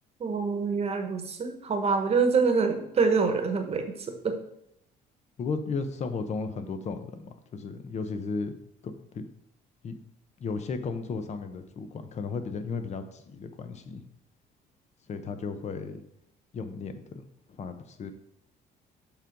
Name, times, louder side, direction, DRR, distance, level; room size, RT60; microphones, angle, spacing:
voice 1, 0.2-4.4, right 5 dB, 35° right, 6 dB, 1.2 m, -26 dB
voice 2, 5.4-8.6 9.1-9.2 9.8-9.9 10.4-14.0 15.1-16.0 16.5-17.2 17.6-18.1, left 4 dB, 40° left, 9 dB, 0.8 m, -34 dB
7.3 x 3.8 x 5.2 m, 0.78 s
cardioid pair, 110°, 17 cm